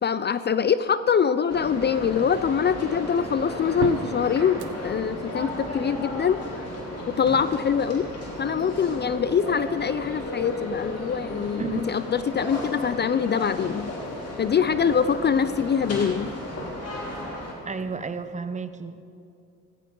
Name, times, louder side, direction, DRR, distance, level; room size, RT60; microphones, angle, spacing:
voice 1, 0.0-6.4 7.1-8.1 8.4-13.9 14.4-16.3, left 7 dB, 35° left, 13 dB, 0.4 m, -24 dB
sound 1, 1.5-17.5, left 1 dB, 55° left, 3.5 m, -35 dB
sound 2, 2.0-18.4, right 7 dB, 65° right, 1.1 m, -45 dB
voice 2, 17.6-19.1, right 4 dB, 25° right, 10 dB, 0.8 m, -32 dB
16.0 x 15.5 x 3.9 m, 2.5 s
cardioid pair, 90°, 30 cm